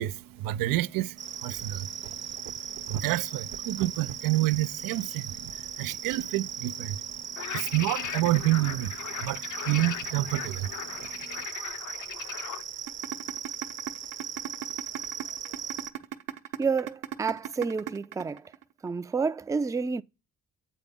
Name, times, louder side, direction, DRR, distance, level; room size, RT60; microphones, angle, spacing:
voice 1, 0.0-7.2 7.5-10.7 11.2-11.4, right 16 dB, 85° right, 0.5 m, -29 dB
sound 1, 1.2-15.9, right 6 dB, 35° right, 0.7 m, -38 dB
sound 2, 7.4-12.6, left 10 dB, 65° left, 0.6 m, -38 dB
sound 3, 12.9-18.9, right 11 dB, 70° right, 0.9 m, -36 dB
voice 2, 16.6-18.5 18.8-20.0, right 5 dB, 10° right, 0.3 m, -29 dB
8.1 x 4.0 x 3.6 m
supercardioid pair, 60°, 33 cm